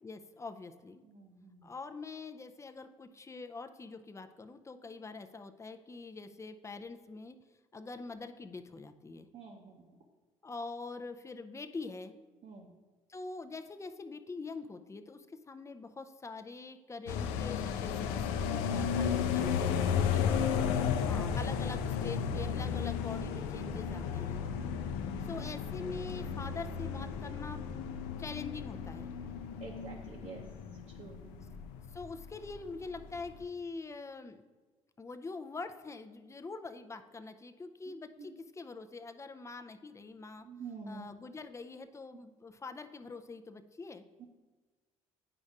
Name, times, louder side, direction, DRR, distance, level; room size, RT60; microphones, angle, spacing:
voice 1, 0.0-1.0 1.6-7.4 7.7-9.3 10.4-12.1 13.1-18.2 18.7-19.6 20.7-24.4 25.2-27.6 28.2-29.1 31.9-34.4 35.0-40.5 40.9-44.0, left 3 dB, 15° left, 8 dB, 0.5 m, -44 dB
voice 2, 1.0-1.7 9.3-10.0 12.4-12.7 19.7-20.5 24.6-25.3 29.6-30.4 31.0-31.6 37.9-38.3 40.4-41.1 44.2-44.3, right 4 dB, 45° right, 0 dB, 0.8 m, -49 dB
sound 1, 17.1-32.2 32.5-32.6 32.8-33.4, left 7 dB, 65° left, 0.5 m, -34 dB
9.7 x 5.1 x 2.5 m, 1.3 s
figure-of-eight pair, 55°, 17 cm